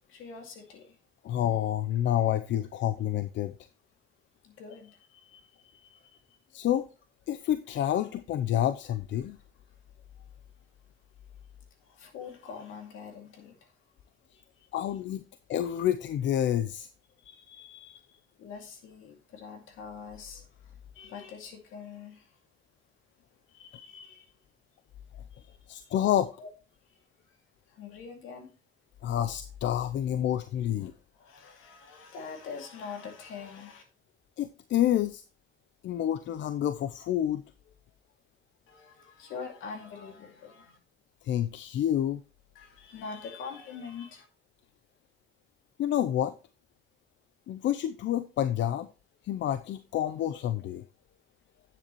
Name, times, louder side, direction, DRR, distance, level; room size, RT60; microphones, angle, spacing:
voice 1, 0.1-1.0 4.4-6.4 9.2-9.3 11.8-13.9 14.3-14.7 17.2-22.4 23.5-24.4 25.3-26.0 26.4-26.5 26.8-28.5 30.8-33.8 38.7-40.8 42.5-44.3, left 5 dB, 85° left, 2.3 m, -45 dB
voice 2, 1.2-3.5 6.5-6.9 7.3-9.4 14.7-15.2 15.5-16.9 25.7-26.3 29.0-30.9 34.4-35.2 35.8-37.4 41.2-42.2 45.8-46.3 47.5-48.9 49.2-50.8, left 11 dB, 70° left, 0.5 m, -28 dB
9.7 x 7.6 x 3.0 m
cardioid pair, 90°, 20 cm